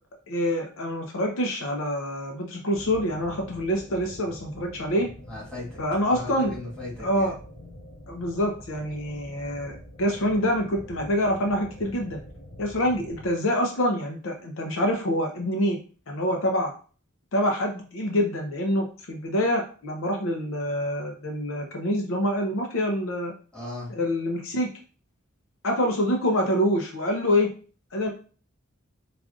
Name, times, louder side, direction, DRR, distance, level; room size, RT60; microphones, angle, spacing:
voice 1, 0.3-5.1 5.8-6.5 7.0-7.3 8.1-12.2 12.6-15.8 16.1-16.7 17.3-23.3 24.0-24.7 25.6-27.5 27.9-28.1, equal, 75° left, 2 dB, 0.6 m, -26 dB
sound 1, 2.7-13.3, left 1 dB, 20° left, 1.7 m, -45 dB
voice 2, 5.3-5.8 6.1-7.3 23.5-23.9, left 2 dB, 5° left, -7 dB, 1.9 m, -37 dB
4.9 x 2.5 x 2.4 m, 0.39 s
head